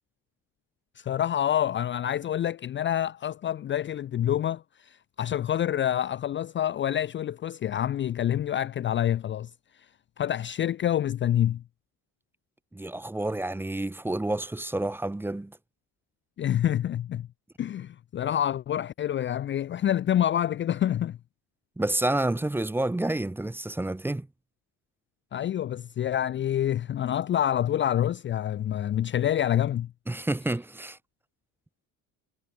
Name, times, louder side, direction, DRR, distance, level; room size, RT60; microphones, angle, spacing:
voice 1, 1.0-9.5 10.2-11.6 16.4-17.3 17.6-21.2 25.3-29.9, left 11 dB, 35° left, 0.6 m, -27 dB
voice 2, 12.7-15.6 21.8-24.3 30.1-31.0, right 1 dB, 5° right, 1.2 m, -29 dB
cardioid pair, 165°, 34 cm